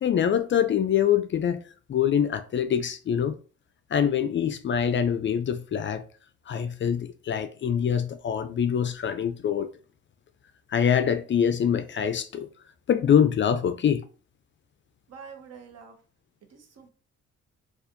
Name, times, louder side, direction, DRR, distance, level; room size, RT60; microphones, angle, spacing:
voice 1, 0.0-1.6 1.9-3.4 3.9-6.0 6.5-9.7 10.7-12.5 12.9-14.0, left 8 dB, 40° left, 0.4 m, -24 dB
voice 2, 15.1-16.0 16.5-16.9, right 6 dB, 55° right, 0.9 m, -46 dB
4.2 x 2.4 x 2.6 m
cardioid pair, 90°, 30 cm